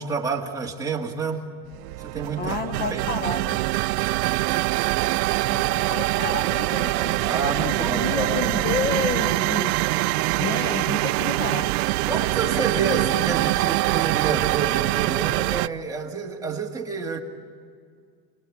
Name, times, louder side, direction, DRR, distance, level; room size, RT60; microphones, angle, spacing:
voice 1, 0.0-1.4 2.0-2.6 2.9-3.0 7.1-8.7 12.1-17.2, right 5 dB, 5° right, -2 dB, 2.1 m, -29 dB
sound 1, 1.7-15.7, right 20 dB, 80° right, 0.6 m, -24 dB
voice 2, 2.4-3.6 5.5-10.1 10.4-11.8, left 5 dB, 20° left, 8 dB, 0.8 m, -30 dB
29.0 x 20.0 x 8.7 m, 2.2 s
supercardioid pair, 160°, 47 cm